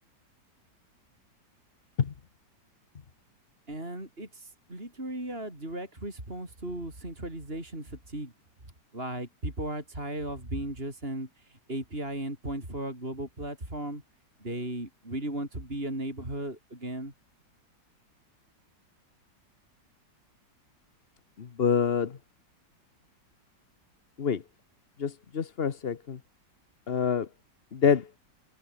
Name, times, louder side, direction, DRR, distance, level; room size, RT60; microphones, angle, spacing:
voice 1, 3.7-8.3 8.9-14.0 14.4-17.1, right 1 dB, 30° right, 7.2 m, -36 dB
voice 2, 21.6-22.1 24.2-24.4 25.0-26.2 26.9-27.3 27.7-28.0, left 6 dB, 40° left, 1.1 m, -26 dB
omnidirectional pair, 1.9 m